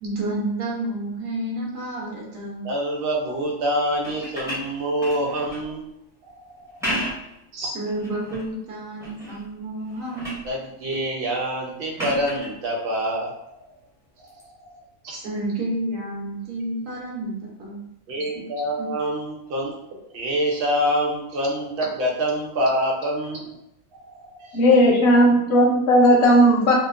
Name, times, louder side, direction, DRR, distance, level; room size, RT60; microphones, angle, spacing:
voice 1, 0.0-2.7 7.6-10.4 15.1-17.9 18.3-18.4 18.8-18.9, right 1 dB, 70° right, -3 dB, 1.1 m, -30 dB
voice 2, 2.6-5.9 6.3-6.9 7.5-7.7 10.4-13.6 14.2-15.2 18.1-19.7 20.1-23.5 23.9-24.6, equal, 55° right, -2 dB, 0.7 m, -26 dB
sound 1, 3.9-5.7 6.6-7.4 7.9-8.5 9.0-9.5 9.8-10.5 12.0-12.5 14.3-14.4, equal, 5° right, 0.4 m, -32 dB
voice 3, 24.5-26.7, equal, 65° left, -1 dB, 0.7 m, -15 dB
2.8 x 2.0 x 2.4 m, 0.81 s
omnidirectional pair, 1.5 m